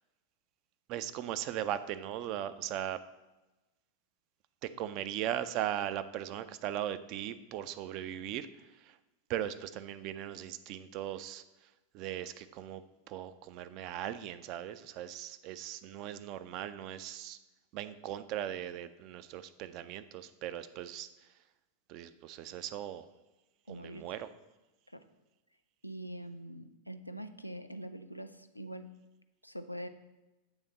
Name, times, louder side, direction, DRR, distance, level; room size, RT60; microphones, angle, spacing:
voice 1, 0.9-3.0 4.8-8.5 9.3-11.4 11.9-12.8 13.1-17.4 17.7-21.1 21.9-23.1 23.7-24.3, right 11 dB, 40° right, 12 dB, 0.3 m, -38 dB
voice 2, 23.7-24.0 24.9-25.0 25.8-28.9 29.4-29.9, right 1 dB, 90° left, 8 dB, 0.3 m, -43 dB
8.0 x 3.4 x 3.9 m, 1.1 s
figure-of-eight pair, 90°, 0 cm